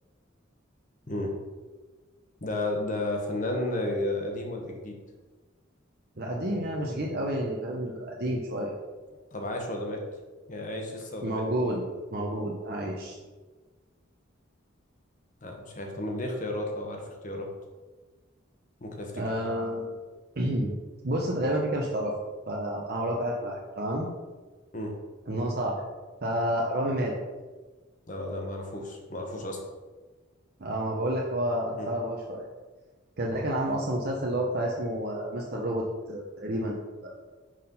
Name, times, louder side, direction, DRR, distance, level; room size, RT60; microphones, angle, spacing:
voice 1, 2.4-5.0 9.1-10.0 10.5-11.4 15.4-17.5 18.8-19.1 24.7-24.9 28.1-29.6 31.7-31.9, left 1 dB, 40° left, 1 dB, 1.2 m, -33 dB
voice 2, 6.2-8.7 11.2-11.8 12.1-13.2 19.1-20.0 20.4-20.7 21.0-22.1 22.5-24.1 25.3-25.9 26.2-27.2 30.6-32.4 33.2-36.7 37.0-37.1, right 1 dB, 50° right, -2 dB, 0.8 m, -29 dB
6.0 x 4.4 x 5.4 m, 1.3 s
head